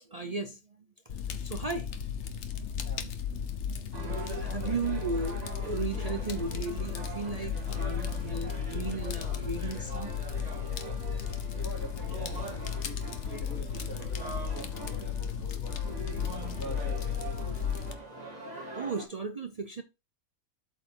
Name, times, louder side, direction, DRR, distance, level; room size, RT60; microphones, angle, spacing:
voice 1, 0.0-1.9 2.5-3.1 3.7-3.8 4.2-10.1 11.0-11.3 18.5-19.8, right 4 dB, 55° right, 0.4 m, -36 dB
Fire, 1.1-17.9, left 7 dB, 60° left, 1.0 m, -34 dB
sound 1, 3.9-19.1, right 3 dB, 30° right, 1.8 m, -43 dB
voice 2, 11.6-16.1 16.4-17.6, equal, 75° left, 3.1 m, -46 dB
7.8 x 4.2 x 4.7 m
omnidirectional pair, 1.5 m